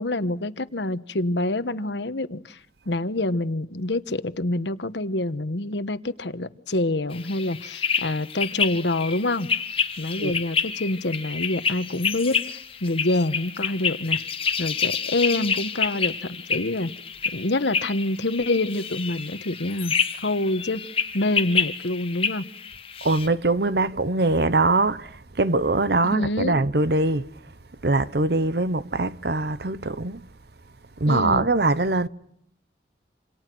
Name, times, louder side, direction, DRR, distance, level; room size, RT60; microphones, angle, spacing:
voice 1, 0.0-2.6 2.9-9.5 10.0-14.2 14.6-16.9 17.3-19.9 20.2-20.8 21.1-22.4 26.0-26.6 31.1-31.5, left 2 dB, 75° left, 1.3 m, -26 dB
sound 1, 7.1-23.3, left 6 dB, 30° left, 1.5 m, -28 dB
voice 2, 23.0-27.3 27.8-30.2 31.0-32.1, right 2 dB, 60° right, 0.9 m, -22 dB
28.0 x 27.5 x 6.2 m
head